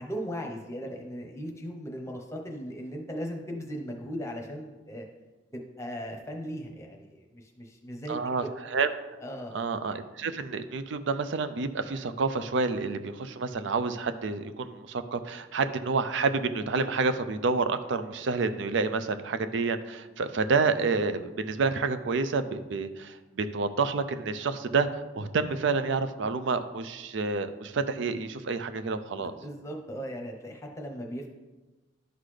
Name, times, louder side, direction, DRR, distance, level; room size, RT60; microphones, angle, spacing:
voice 1, 0.0-5.1 5.5-8.2 8.4-8.5 9.2-9.5 29.2-31.3, equal, 15° left, 1 dB, 0.9 m, -38 dB
voice 2, 8.1-8.4 8.7-8.9 9.5-24.9 25.2-29.3, right 4 dB, 65° right, 10 dB, 0.5 m, -29 dB
11.5 x 3.9 x 3.3 m, 1.1 s
head